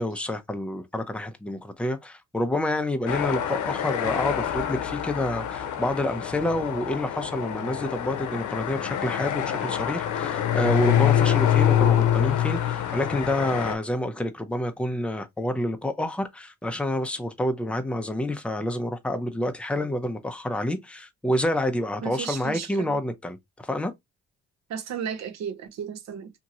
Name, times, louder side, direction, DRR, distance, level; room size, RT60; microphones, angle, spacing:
voice 1, 0.0-23.4 23.6-23.9, left 1 dB, 5° left, 0.5 m, -28 dB
sound 1, 3.1-13.7, left 10 dB, 75° left, 0.7 m, -25 dB
voice 2, 22.0-23.0 24.7-26.3, right 7 dB, 65° right, 0.8 m, -34 dB
2.8 x 2.7 x 2.5 m
cardioid pair, 90°, 30 cm